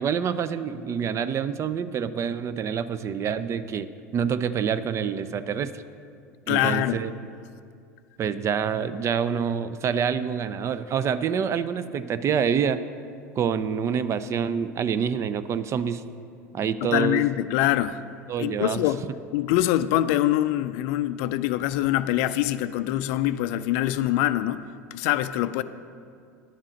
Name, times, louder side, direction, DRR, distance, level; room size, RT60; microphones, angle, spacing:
voice 1, 0.0-5.8 6.5-7.1 8.2-12.8 13.4-16.0 16.5-17.2 18.3-18.8, right 7 dB, 35° right, 13 dB, 0.4 m, -27 dB
voice 2, 6.5-7.0 16.8-18.1 18.4-25.6, left 14 dB, 60° left, 13 dB, 0.4 m, -24 dB
10.0 x 7.3 x 5.1 m, 2.3 s
hypercardioid pair, 80°, 8 cm